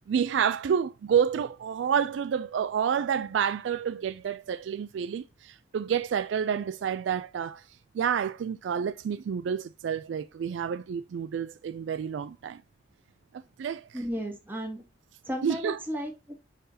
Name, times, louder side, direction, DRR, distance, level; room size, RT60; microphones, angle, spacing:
voice 1, 0.1-7.6 7.9-12.6 13.6-14.0 15.4-15.8, right 7 dB, 70° right, 0.3 m, -29 dB
voice 2, 13.9-14.8 15.2-16.3, equal, 10° right, 1.9 m, -34 dB
9.6 x 3.8 x 2.7 m
head